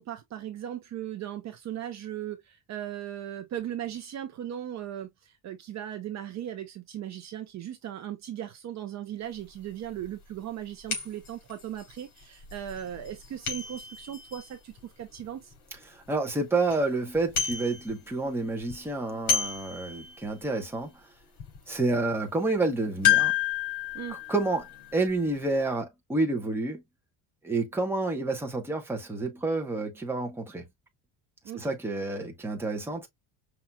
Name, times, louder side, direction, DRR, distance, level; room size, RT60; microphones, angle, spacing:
voice 1, 0.0-15.5 23.9-24.2 31.4-31.7, right 11 dB, 40° right, 0.7 m, -38 dB
sound 1, 9.4-9.5 10.0-10.1 10.9-15.6 16.1-16.2 16.5-16.8 17.1-18.2 18.5-20.4 20.8-20.9 21.4-21.6 23.0-25.4 25.7-25.8, left 9 dB, 50° left, 3.1 m, -30 dB
voice 2, 15.9-20.9 21.7-23.3 24.3-26.8 27.4-30.6 31.5-33.1, right 2 dB, 5° right, 1.0 m, -29 dB
5.7 x 2.8 x 2.3 m
cardioid pair, 160°, 43 cm